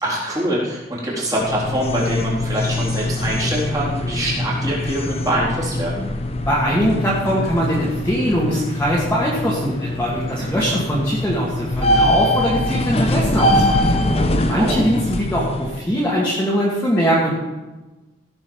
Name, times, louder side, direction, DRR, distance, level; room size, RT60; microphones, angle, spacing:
voice 1, 0.0-6.0 10.4-10.8 14.5-14.8, right 1 dB, 20° right, -5 dB, 4.0 m, -24 dB
sound 1, 1.4-15.8, left 1 dB, 35° left, 1.0 m, -23 dB
voice 2, 6.5-13.8 14.4-17.3, equal, 10° left, -7 dB, 2.3 m, -21 dB
16.5 x 6.9 x 5.5 m, 1.1 s
head